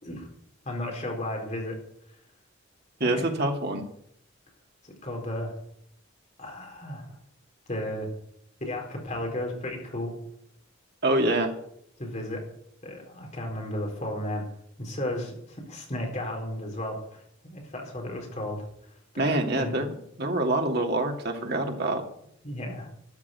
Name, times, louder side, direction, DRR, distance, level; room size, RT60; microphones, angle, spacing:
voice 1, 0.6-1.8 3.0-3.3 4.8-5.5 6.4-7.0 7.7-8.1 8.6-10.1 12.0-12.4 12.8-14.5 14.8-18.6 19.1-19.7 22.4-22.9, left 1 dB, 35° left, 1 dB, 4.3 m, -34 dB
voice 2, 3.0-3.9 11.0-11.5 19.2-22.0, right 2 dB, 50° right, 3 dB, 2.4 m, -26 dB
13.0 x 7.7 x 9.3 m, 0.71 s
head